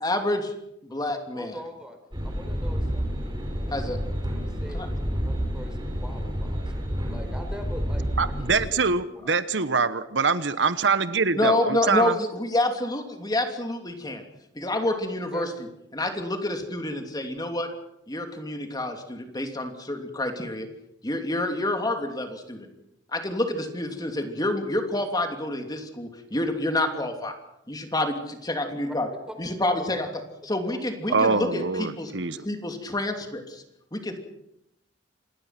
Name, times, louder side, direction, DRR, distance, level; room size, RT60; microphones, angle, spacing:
voice 1, 0.0-0.5 0.8-1.5 3.7-4.0 4.7-4.9 9.2-9.3 11.3-14.2 14.5-15.5 15.9-17.7 18.1-20.7 21.0-22.7 23.1-27.4 27.7-28.2 28.5-29.1 29.4-30.1 30.5-32.1 32.4-33.6 33.9-34.2, left 1 dB, 20° left, 5 dB, 2.9 m, -28 dB
voice 2, 1.4-2.0 2.2-3.3 3.6-3.9 4.4-4.9 5.2-9.3 15.3-15.5 29.3-29.4 29.6-29.9 30.6-31.4, equal, 5° right, 6 dB, 4.3 m, -42 dB
sound 1, 2.1-8.7, equal, 25° right, 5.6 m, -29 dB
voice 3, 8.2-12.2 31.1-32.5, right 4 dB, 75° right, 13 dB, 1.1 m, -24 dB
27.0 x 20.5 x 6.0 m, 0.80 s
head